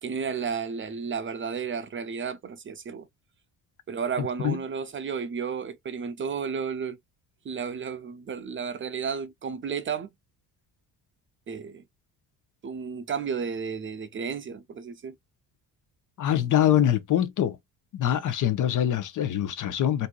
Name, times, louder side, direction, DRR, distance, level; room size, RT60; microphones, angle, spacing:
voice 1, 0.0-3.1 3.9-7.0 7.4-10.1 11.5-11.8 12.6-15.1, right 6 dB, 35° right, 0.5 m, -32 dB
voice 2, 16.2-17.6 17.9-20.1, left 11 dB, 55° left, 0.8 m, -24 dB
4.4 x 2.7 x 2.3 m
cardioid pair, 115°, 37 cm